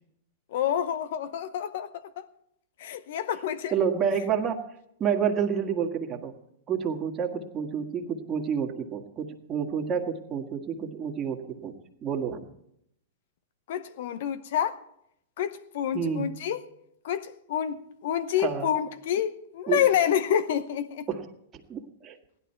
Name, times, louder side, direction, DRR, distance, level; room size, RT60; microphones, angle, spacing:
voice 1, 0.5-1.9 2.2-2.3 2.8-3.7 13.7-14.8 15.4-16.6 17.0-21.1, left 10 dB, 65° left, 0.8 m, -28 dB
voice 2, 3.7-4.7 5.0-6.3 6.7-11.7 12.0-12.4 15.9-16.3 18.4-18.7 19.7-19.8 21.1-21.3 21.7-22.2, right 7 dB, 25° right, 1.8 m, -29 dB
16.5 x 11.5 x 4.5 m
hypercardioid pair, 125°, 0 cm